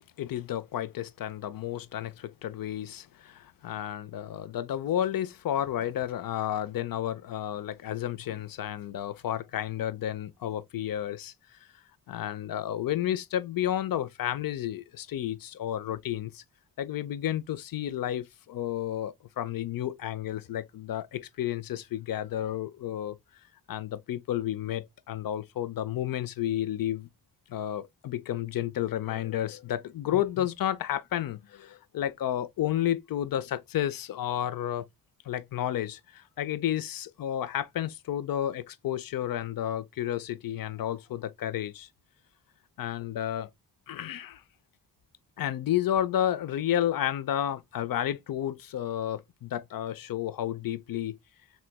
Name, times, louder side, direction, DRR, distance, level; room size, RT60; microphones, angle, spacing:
voice 1, 0.2-11.3 12.1-16.4 16.8-23.2 23.7-27.1 27.5-34.9 35.3-41.9 42.8-43.5 43.9-44.4 45.4-51.2, left 11 dB, 55° left, 0.5 m, -31 dB
3.2 x 3.0 x 2.2 m
cardioid pair, 50°, 43 cm